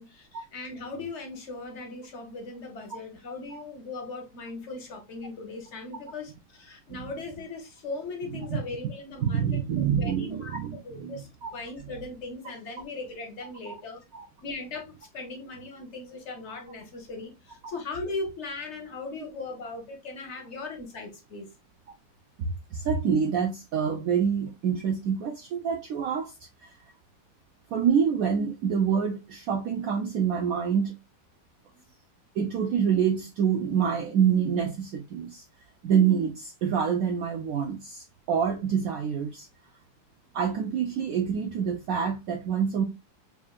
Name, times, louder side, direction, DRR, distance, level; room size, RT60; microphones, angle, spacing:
voice 1, 0.0-9.6 10.0-14.0 14.4-21.5, left 3 dB, 50° left, 0.8 m, -38 dB
voice 2, 9.2-11.5 13.7-13.8 14.1-14.3 22.4-26.3 27.7-31.0 32.4-35.4 35.8-39.5 40.3-42.8, right 7 dB, 85° right, 0.7 m, -26 dB
5.4 x 2.5 x 2.3 m
omnidirectional pair, 2.1 m